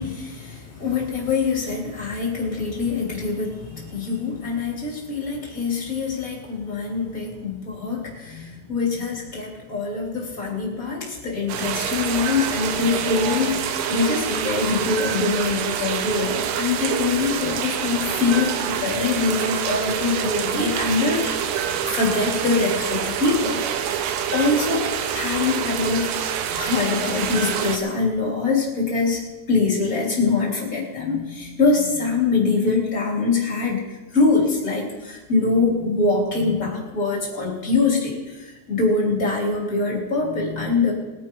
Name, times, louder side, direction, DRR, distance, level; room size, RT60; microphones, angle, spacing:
voice 1, 0.0-24.0 24.3-29.2 29.5-33.8 34.1-40.9, left 4 dB, 20° left, -2 dB, 2.5 m, -24 dB
sound 1, 11.5-27.8, right 9 dB, 90° right, 3.3 m, -26 dB
21.5 x 9.3 x 4.6 m, 1.2 s
omnidirectional pair, 5.2 m